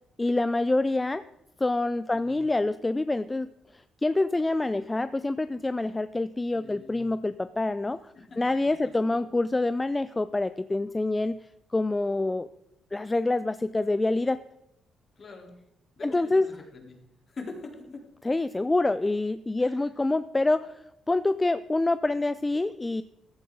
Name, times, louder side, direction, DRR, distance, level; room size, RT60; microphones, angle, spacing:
voice 1, 0.2-1.2 1.6-8.0 8.4-11.4 11.7-12.5 12.9-14.4 16.0-16.5 18.2-23.0, left 2 dB, 15° left, 13 dB, 0.4 m, -26 dB
voice 2, 6.5-7.1 8.2-9.2 15.2-15.5 16.0-17.0 17.3-18.0 19.6-19.8, left 3 dB, 45° left, 1 dB, 3.6 m, -44 dB
15.0 x 11.5 x 3.9 m, 0.85 s
cardioid pair, 90°, 0 cm